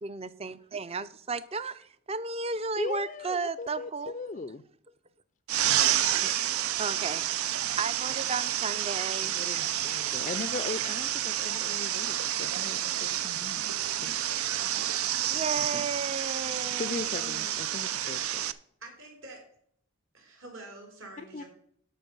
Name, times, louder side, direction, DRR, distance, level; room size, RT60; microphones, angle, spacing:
voice 1, 0.0-4.1 6.2-6.3 6.8-7.3 7.6-9.7 15.3-17.5, right 4 dB, 30° right, 0.5 m, -34 dB
voice 2, 2.8-4.6 5.9-6.0 9.2-13.7 14.0-14.2 15.7-15.9 16.7-18.4 21.3-21.4, left 4 dB, 35° left, 0.4 m, -39 dB
sound 1, 5.5-18.5, right 11 dB, 85° right, 0.5 m, -29 dB
voice 3, 18.8-19.4 20.1-21.4, right 2 dB, 65° right, 3.3 m, -46 dB
12.5 x 5.7 x 5.3 m
head